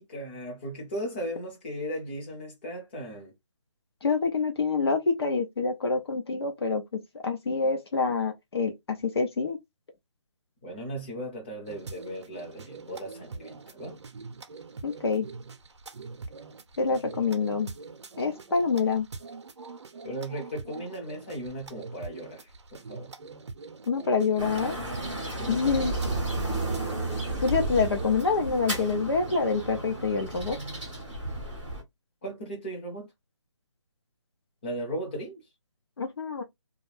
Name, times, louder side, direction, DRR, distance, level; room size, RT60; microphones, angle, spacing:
voice 1, 0.0-3.3 10.6-14.0 20.0-23.1 25.4-26.0 32.2-33.1 34.6-35.4, right 1 dB, 20° left, 0.8 m, -37 dB
voice 2, 4.0-9.6 14.8-15.3 16.8-17.7 18.2-19.1 23.9-24.8 25.5-26.0 27.4-30.6 36.0-36.4, left 4 dB, 55° left, 0.7 m, -26 dB
sound 1, 11.6-28.3, right 4 dB, 65° right, 0.6 m, -44 dB
sound 2, 24.4-31.8, right 2 dB, 5° right, 0.3 m, -33 dB
2.3 x 2.1 x 3.1 m
hypercardioid pair, 170°, 16 cm